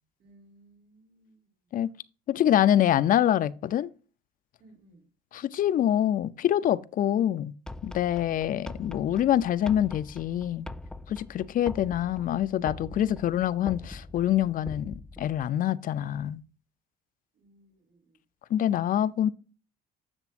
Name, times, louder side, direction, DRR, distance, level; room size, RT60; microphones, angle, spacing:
voice 1, 0.2-1.5 4.6-5.1 17.3-18.2, right 2 dB, 75° right, 3.2 m, -59 dB
voice 2, 2.3-3.9 5.3-7.5 7.8-10.7 11.1-16.4 18.5-19.3, left 11 dB, 55° left, 0.6 m, -25 dB
sound 1, 7.7-15.5, left 2 dB, 5° left, 0.3 m, -43 dB
11.0 x 7.1 x 2.6 m
cardioid pair, 110°, 17 cm